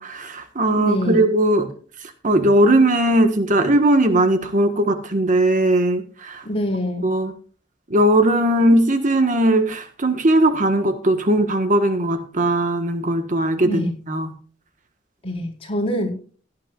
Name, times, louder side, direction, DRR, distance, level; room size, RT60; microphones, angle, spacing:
voice 1, 0.0-1.7 2.2-6.4 7.0-7.3 7.9-14.3, right 1 dB, 45° right, 7 dB, 1.5 m, -18 dB
voice 2, 0.7-1.2 6.4-7.0 13.6-13.9 15.2-16.1, equal, 30° left, 0 dB, 4.6 m, -24 dB
17.0 x 11.0 x 2.5 m, 0.41 s
head